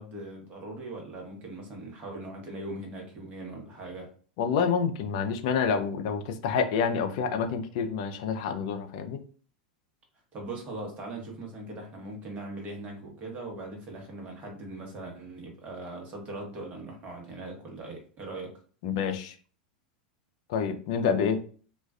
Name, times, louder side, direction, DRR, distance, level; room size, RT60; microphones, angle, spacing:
voice 1, 0.0-4.1 10.3-18.5, right 2 dB, 35° right, 1 dB, 1.0 m, -40 dB
voice 2, 4.4-9.2 18.8-19.4 20.5-21.4, left 6 dB, 55° left, 7 dB, 0.4 m, -28 dB
2.4 x 2.2 x 2.3 m, 0.42 s
figure-of-eight pair, 90°, 4 cm